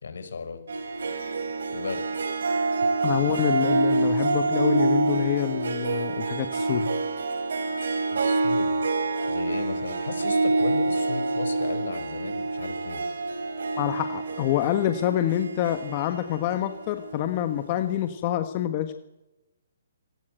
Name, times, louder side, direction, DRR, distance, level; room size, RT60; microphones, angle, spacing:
voice 1, 0.0-0.6 1.7-2.2 2.6-2.8 8.1-8.8 9.3-13.0, left 4 dB, 80° left, 9 dB, 5.8 m, -35 dB
Harp, 0.7-17.5, right 3 dB, 75° right, 4.0 m, -27 dB
voice 2, 3.0-6.9 13.8-18.9, left 12 dB, 30° left, 8 dB, 1.3 m, -26 dB
26.5 x 17.0 x 8.0 m, 1.0 s
hypercardioid pair, 165°, 0 cm